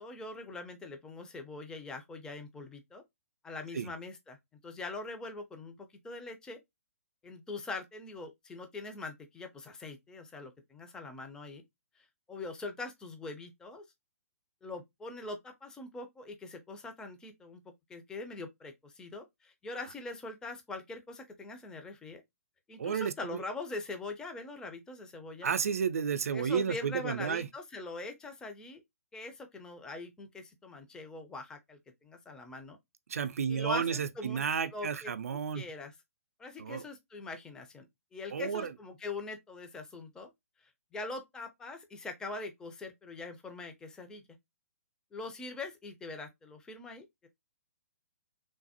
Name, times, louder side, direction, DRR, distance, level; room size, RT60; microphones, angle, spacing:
voice 1, 0.0-3.0 3.4-4.4 4.6-6.6 7.2-11.6 12.3-13.8 14.6-17.6 17.9-22.2 22.7-25.5 26.3-28.8 29.1-32.8 33.5-34.5 34.7-35.9 36.4-40.3 40.9-44.3 45.1-47.3, left 3 dB, 10° left, 0.4 m, -43 dB
voice 2, 22.8-23.4 25.4-27.5 33.1-35.6 36.6-36.8 38.3-38.7, right 7 dB, 65° right, 0.4 m, -32 dB
3.2 x 2.0 x 2.7 m
figure-of-eight pair, 125°, 8 cm